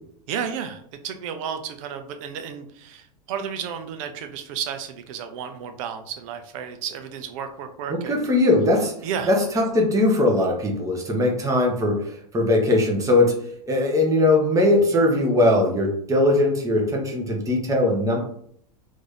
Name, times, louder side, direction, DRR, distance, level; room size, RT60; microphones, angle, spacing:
voice 1, 0.3-8.2 9.0-9.3, right 7 dB, 55° right, 7 dB, 0.6 m, -32 dB
voice 2, 7.9-8.9 9.3-13.4 13.7-18.2, left 1 dB, 15° right, 1 dB, 1.0 m, -20 dB
3.1 x 2.7 x 3.7 m, 0.64 s
figure-of-eight pair, 90°, 20 cm